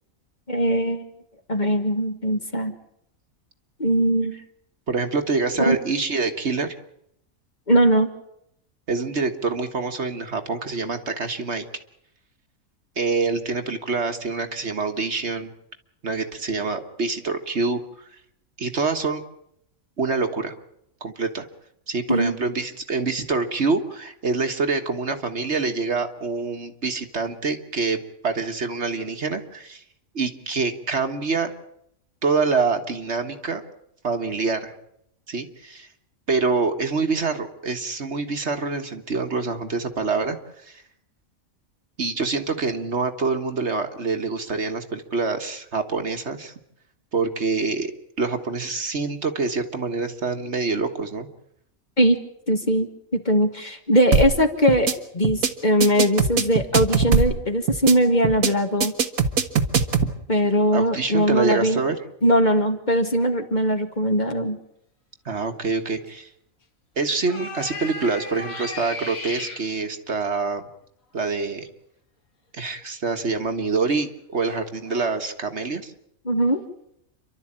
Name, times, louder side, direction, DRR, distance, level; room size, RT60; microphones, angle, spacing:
voice 1, 0.5-1.1 1.5-2.7 3.8-4.3 5.7-5.8 7.7-8.1 22.1-22.3 52.0-52.2 52.5-54.9 55.1-58.9 60.3-61.8 62.2-64.6 76.3-76.6, equal, 35° left, 5 dB, 2.0 m, -20 dB
voice 2, 4.9-6.7 8.9-11.6 13.0-15.5 16.0-17.8 18.6-19.2 20.0-20.5 21.0-21.5 21.9-28.0 28.2-29.8 30.2-31.5 32.2-33.6 34.0-34.7 35.3-35.9 36.3-40.4 40.6-40.8 42.0-46.5 47.1-47.9 48.2-51.3 60.7-62.0 65.3-66.3 67.0-70.7 71.1-71.7 72.5-75.9, right 4 dB, 50° right, 6 dB, 1.8 m, -26 dB
sound 1, 54.1-54.4 54.7-54.9 55.2-55.5 55.8-57.4 57.7-57.9 58.2-58.5 58.8-60.1, right 5 dB, 75° right, 1.8 m, -20 dB
sound 2, 66.1-66.2 67.2-69.7 73.9-74.0 74.4-75.2, left 2 dB, 75° left, 2.8 m, -35 dB
29.0 x 12.5 x 8.8 m, 0.76 s
omnidirectional pair, 1.5 m